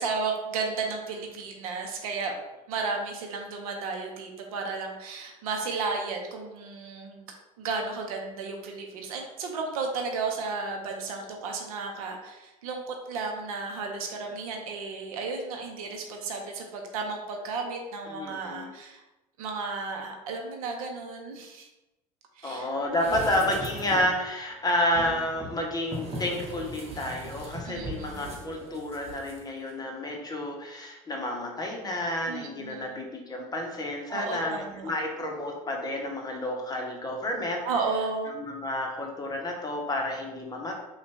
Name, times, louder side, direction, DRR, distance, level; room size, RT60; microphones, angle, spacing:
voice 1, 0.0-2.3 2.7-7.3 7.6-19.0 19.4-21.7 22.4-22.7 27.6-28.2 32.3-33.1 34.1-34.9 37.6-38.4, right 4 dB, 80° right, 2 dB, 0.7 m, -33 dB
voice 2, 18.1-18.8 22.4-37.6 38.2-40.7, left 1 dB, 20° left, 1 dB, 0.9 m, -30 dB
sound 1, 22.9-24.2 24.9-29.4 29.7-29.8, right 1 dB, 35° right, 1.0 m, -39 dB
3.8 x 2.3 x 3.4 m, 1.0 s
hypercardioid pair, 75°, 18 cm